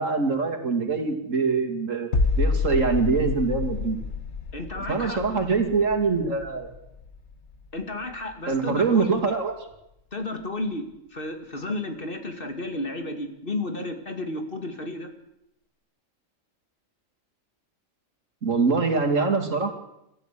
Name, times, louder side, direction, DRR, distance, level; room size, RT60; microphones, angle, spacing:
voice 1, 0.0-2.1 2.4-4.0 4.7-6.7 8.5-9.5 18.4-19.7, right 4 dB, 80° right, 5 dB, 3.0 m, -24 dB
sound 1, 2.1-7.8 8.1-8.3, left 4 dB, 60° left, 1.7 m, -28 dB
voice 2, 4.5-5.2 7.7-9.2 10.1-15.1, left 2 dB, 45° left, 6 dB, 2.5 m, -32 dB
26.0 x 13.5 x 8.5 m, 0.83 s
omnidirectional pair, 1.3 m